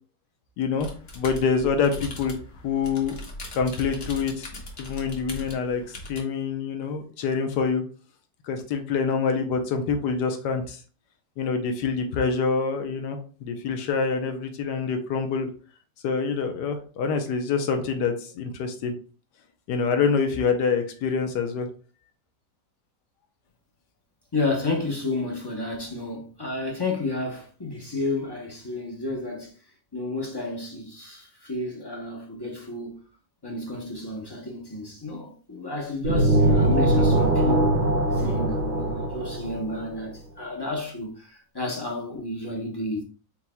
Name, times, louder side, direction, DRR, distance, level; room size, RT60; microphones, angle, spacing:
voice 1, 0.6-0.9 1.1-2.4 2.6-3.2 3.5-4.5 4.8-7.8 8.4-10.8 11.4-15.5 16.0-18.9 19.7-21.7, left 5 dB, 80° left, 1.3 m, -26 dB
sound 1, 0.8-6.2, left 1 dB, 40° left, 1.1 m, -40 dB
voice 2, 24.3-29.5 29.9-33.0 33.4-37.8 38.1-43.0, left 2 dB, 20° left, 0.7 m, -31 dB
sound 2, 36.0-39.9, right 1 dB, 65° right, 0.5 m, -21 dB
4.5 x 4.0 x 2.2 m
omnidirectional pair, 1.8 m